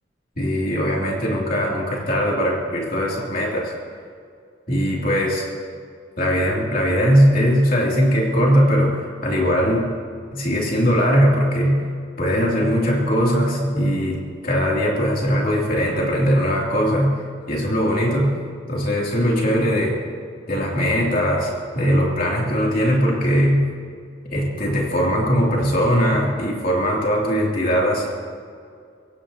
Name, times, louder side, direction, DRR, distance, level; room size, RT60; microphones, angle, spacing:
voice 1, 0.4-3.7 4.7-5.4 6.2-9.9 10.3-11.9 12.2-17.1 17.5-18.3 18.7-20.0 20.5-23.7 24.2-28.1, equal, 50° left, -3 dB, 2.9 m, -20 dB
25.0 x 17.0 x 2.9 m, 2.2 s
head